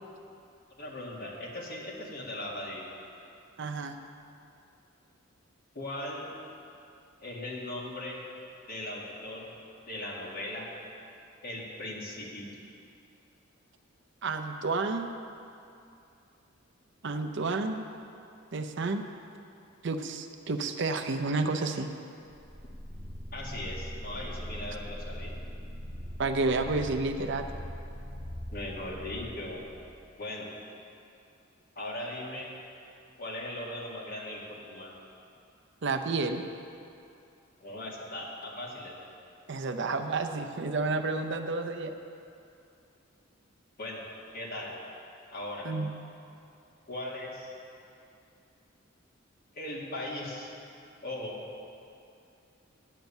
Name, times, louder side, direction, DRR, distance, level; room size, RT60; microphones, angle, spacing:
voice 1, 0.8-2.9 5.7-6.3 7.2-8.2 8.7-9.5 9.9-10.7 11.4-12.5 23.3-25.3 28.5-29.6 30.2-30.5 31.8-32.5 33.2-34.9 37.6-39.1 43.8-44.0 44.3-44.7 45.3-45.7 46.9-47.5 49.6-50.5 51.0-51.4, left 1 dB, 45° left, -4 dB, 1.9 m, -38 dB
voice 2, 3.6-4.0 14.2-15.1 17.0-17.8 18.5-19.0 19.8-21.9 26.2-27.4 35.8-36.4 39.5-42.0 45.6-45.9, right 3 dB, 60° right, 7 dB, 0.6 m, -30 dB
sound 1, 22.3-30.0, equal, ahead, 2.8 m, -41 dB
9.2 x 7.9 x 7.2 m, 2.6 s
head